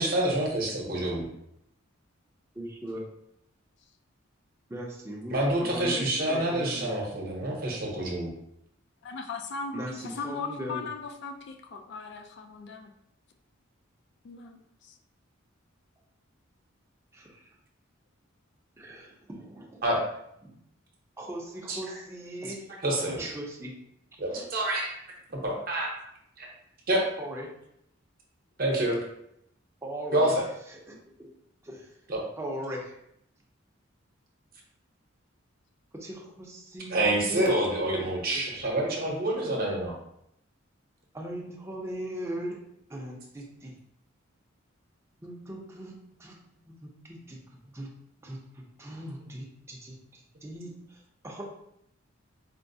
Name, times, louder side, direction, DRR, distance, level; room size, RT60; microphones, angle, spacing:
voice 1, 0.0-1.3 5.3-8.3 19.8-20.0 21.7-21.8 22.8-23.2 24.2-24.9 25.3-25.9 26.4-26.5 26.9-27.0 28.6-29.0 30.1-30.4 32.1-32.2 36.9-39.9, right 1 dB, 45° right, -1 dB, 0.7 m, -27 dB
voice 2, 2.6-3.0 4.7-7.0 9.7-10.8 17.1-17.5 18.8-19.8 20.4-20.5 21.2-22.6 23.0-23.7 24.3-24.5 27.2-27.5 29.8-30.3 30.7-31.3 31.6-31.9 32.4-33.0 35.9-37.5 41.1-42.6 42.9-43.7 45.2-45.9 46.2-46.4 46.7-47.4 47.7-47.9 48.2-51.5, right 1 dB, 15° right, -2 dB, 0.5 m, -39 dB
voice 3, 9.0-12.9 14.2-15.0, left 4 dB, 55° left, 5 dB, 0.3 m, -38 dB
4.4 x 2.0 x 2.6 m, 0.77 s
head